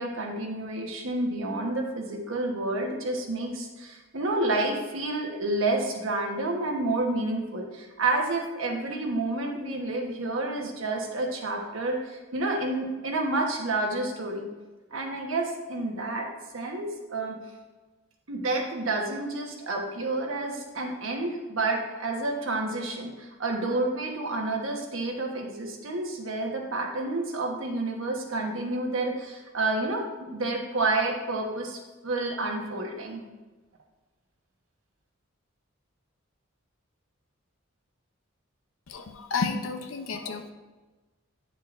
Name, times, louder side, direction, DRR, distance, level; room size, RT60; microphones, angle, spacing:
voice 1, 0.0-14.5 14.9-16.3 16.5-17.4 18.3-30.0 30.3-33.2, right 2 dB, 75° right, 1 dB, 1.2 m, -29 dB
voice 2, 38.9-40.5, left 4 dB, 80° left, 6 dB, 0.7 m, -31 dB
9.6 x 6.5 x 2.6 m, 1.2 s
head